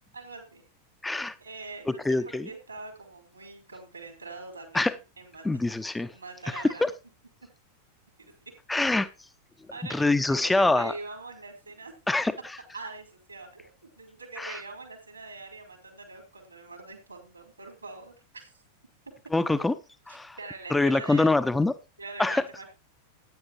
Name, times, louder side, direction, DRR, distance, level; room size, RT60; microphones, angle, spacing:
voice 1, 0.1-0.6 1.4-5.5 6.1-6.9 9.7-11.9 12.7-18.6 20.1-21.3 22.0-22.7, right 3 dB, 80° right, 4.5 m, -43 dB
voice 2, 1.0-1.3 1.9-2.5 4.7-4.9 5.4-6.1 6.5-6.9 8.7-9.1 9.9-10.9 12.1-12.3 14.4-14.6 19.3-19.7 20.1-20.4 20.7-21.7 22.2-22.4, left 2 dB, 5° left, 0.8 m, -24 dB
15.0 x 9.7 x 3.1 m
figure-of-eight pair, 90°, 0 cm